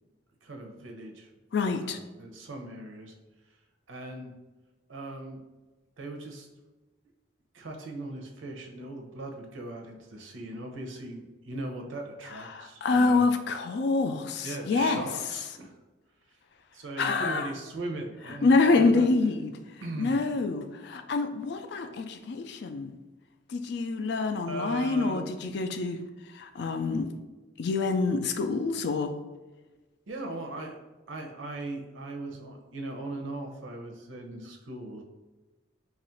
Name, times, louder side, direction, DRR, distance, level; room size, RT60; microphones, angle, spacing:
voice 1, 0.4-1.3 1.7-3.1 3.9-4.3 4.9-5.4 6.0-6.5 7.5-13.3 14.4-15.7 16.7-18.5 18.8-19.1 19.8-20.2 24.5-25.3 30.1-30.7 31.1-35.0, right 2 dB, 85° right, 3 dB, 0.6 m, -39 dB
voice 2, 1.5-2.0 12.5-15.0 17.0-17.5 18.4-19.5 20.0-22.9 23.5-26.0 26.3-27.1 27.6-29.1, left 3 dB, 60° left, 8 dB, 0.3 m, -26 dB
3.0 x 2.4 x 4.2 m, 1.2 s
head